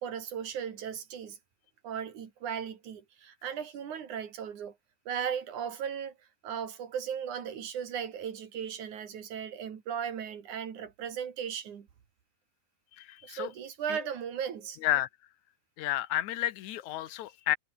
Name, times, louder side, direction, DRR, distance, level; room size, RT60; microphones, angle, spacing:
voice 1, 0.0-1.4 1.8-4.7 5.1-6.1 6.4-11.9 13.2-14.8, right 8 dB, 75° right, 3.7 m, -37 dB
voice 2, 13.0-13.5 13.9-14.0 14.8-15.1 15.8-17.6, left 14 dB, 70° left, 2.4 m, -31 dB
omnidirectional pair, 3.6 m